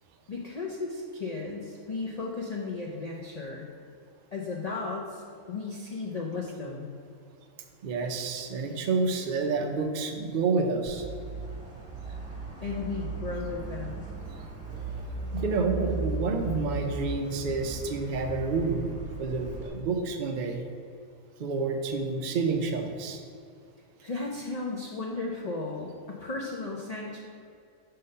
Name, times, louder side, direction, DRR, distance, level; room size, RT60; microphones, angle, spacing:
voice 1, 0.3-3.7 4.3-6.9 12.6-14.1 24.0-27.2, left 3 dB, 75° left, -1 dB, 0.3 m, -35 dB
voice 2, 7.8-11.1 15.3-18.9 19.2-20.6 21.4-23.2, right 4 dB, 65° right, 3 dB, 0.5 m, -29 dB
sound 1, 10.9-19.7, right 3 dB, 5° right, 1.2 m, -37 dB
5.4 x 3.8 x 5.4 m, 2.4 s
omnidirectional pair, 1.4 m